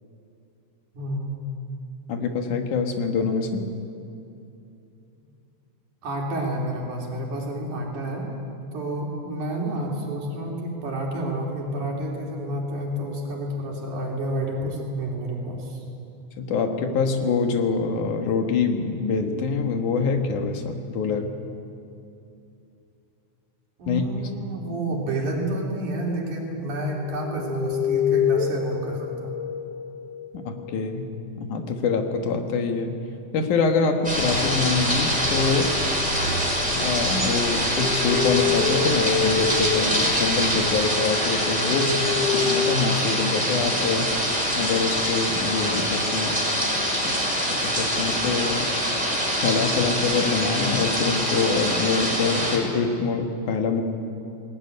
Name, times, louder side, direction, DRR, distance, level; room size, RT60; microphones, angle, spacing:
voice 1, 0.9-1.4 6.0-15.8 23.8-29.3 41.6-42.1, right 1 dB, 90° right, -1 dB, 4.8 m, -29 dB
voice 2, 2.1-3.7 16.4-21.3 23.9-24.3 30.3-31.1 31.4-33.0 33.3-35.8 36.7-41.9 42.4-44.1 44.6-46.4 47.0-48.7 49.4-53.8, left 4 dB, 85° left, 4 dB, 3.1 m, -25 dB
sound 1, 26.7-30.8 34.9-36.4 37.3-42.8, left 7 dB, 70° left, 1.6 m, -28 dB
sound 2, 34.0-40.9, right 1 dB, 30° left, 5.3 m, -36 dB
sound 3, 34.0-52.6, equal, ahead, 5.5 m, -24 dB
20.5 x 20.0 x 9.8 m, 2.7 s
omnidirectional pair, 3.4 m